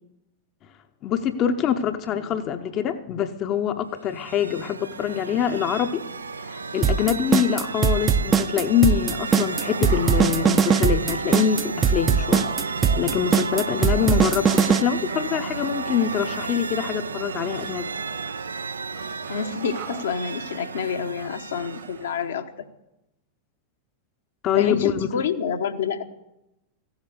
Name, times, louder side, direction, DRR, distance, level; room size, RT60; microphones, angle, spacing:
voice 1, 1.0-6.0 6.4-17.9 24.4-25.2, left 8 dB, 35° left, 8 dB, 0.7 m, -25 dB
sound 1, 4.0-22.2, right 4 dB, 75° right, 0.4 m, -32 dB
sound 2, 6.8-14.8, right 6 dB, 25° right, 0.6 m, -20 dB
sound 3, 9.4-22.2, right 9 dB, 45° right, 1.3 m, -43 dB
voice 2, 19.3-22.7 24.5-26.0, left 6 dB, 65° left, 6 dB, 1.0 m, -28 dB
15.0 x 8.1 x 8.2 m, 0.91 s
figure-of-eight pair, 90°, 0 cm